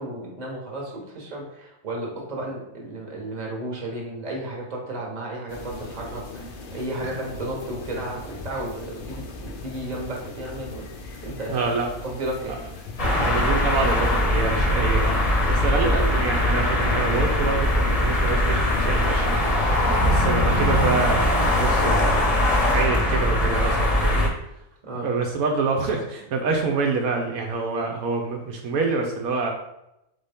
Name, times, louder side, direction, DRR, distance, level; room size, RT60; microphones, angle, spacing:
voice 1, 0.0-10.8 11.2-11.7 12.0-12.6 15.7-15.9 24.8-25.1, right 1 dB, 30° right, -1 dB, 1.0 m, -33 dB
sound 1, 5.5-22.9, left 2 dB, 60° left, 0.5 m, -36 dB
voice 2, 11.5-11.9 13.2-15.2 15.4-19.7 19.9-24.3 25.0-29.5, right 4 dB, 75° right, 2 dB, 1.1 m, -26 dB
sound 2, 13.0-24.3, left 1 dB, 30° left, 0.7 m, -21 dB
4.1 x 3.6 x 3.4 m, 0.84 s
omnidirectional pair, 1.5 m